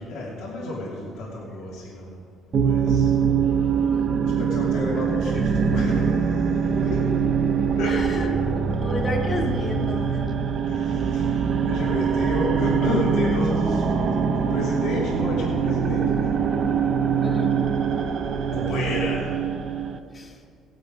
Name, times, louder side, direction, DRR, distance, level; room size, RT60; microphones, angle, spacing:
voice 1, 0.0-2.1 2.5-3.1 4.4-6.2 6.8-7.1 7.8-8.0 10.7-11.4 11.6-16.3 18.5-19.3, left 2 dB, 85° left, -5 dB, 2.8 m, -30 dB
sound 1, 2.5-20.0, right 6 dB, 50° right, 0.8 m, -23 dB
voice 2, 3.8-4.3 4.7-4.8 5.3-6.1 6.5-6.9 7.8-10.4 17.2-17.6 20.1-20.4, left 1 dB, 35° left, 2 dB, 2.1 m, -33 dB
18.5 x 7.7 x 5.2 m, 2.2 s
cardioid pair, 105°, 0 cm